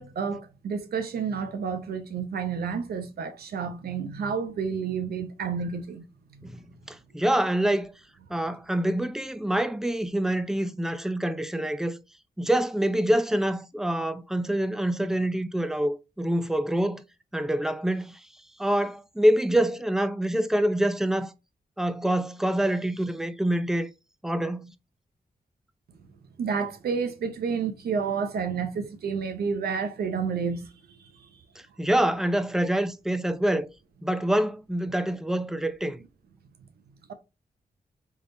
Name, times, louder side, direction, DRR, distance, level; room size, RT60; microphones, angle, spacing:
voice 1, 0.0-6.5 26.4-30.7 31.0-31.3, right 6 dB, 85° right, 0.8 m, -30 dB
voice 2, 6.4-7.9 8.3-12.0 12.4-17.0 17.3-18.2 18.6-21.3 21.8-23.9 24.2-24.7 31.8-33.7 34.0-36.0, right 1 dB, 5° right, 0.5 m, -26 dB
3.7 x 3.3 x 2.6 m
cardioid pair, 65°, 16 cm